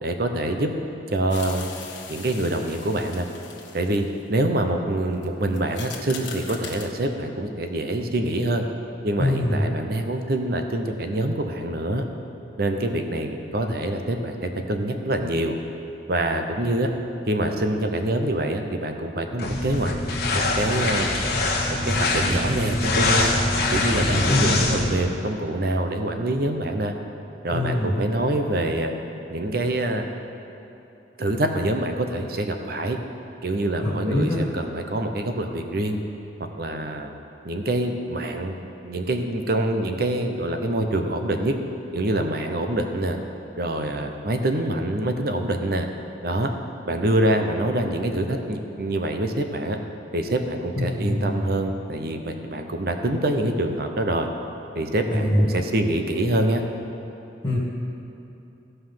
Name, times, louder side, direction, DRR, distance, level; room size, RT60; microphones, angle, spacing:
voice 1, 0.0-0.7 1.1-1.7 2.1-3.3 3.7-8.6 9.0-12.1 12.6-15.6 16.1-16.9 17.3-19.9 20.3-21.1 21.6-23.3 23.7-26.9 27.4-28.9 29.3-30.1 31.2-33.0 33.4-36.0 36.6-37.1 37.4-38.5 38.8-41.6 41.9-43.2 43.6-45.9 46.2-46.5 46.9-49.8 50.1-54.3 54.7-56.6, right 1 dB, 55° right, 5 dB, 0.8 m, -25 dB
sound 1, 1.3-4.2 5.1-5.2 5.5-6.9, left 5 dB, 85° left, 1.4 m, -40 dB
voice 2, 9.2-9.6 24.0-24.6 27.5-28.0 33.8-34.4 50.8-51.3 55.1-55.5 57.4-57.6, left 1 dB, 25° left, -7 dB, 1.7 m, -23 dB
sound 2, 19.4-25.0, left 2 dB, 60° left, 1.3 m, -23 dB
14.5 x 5.5 x 5.7 m, 2.9 s
head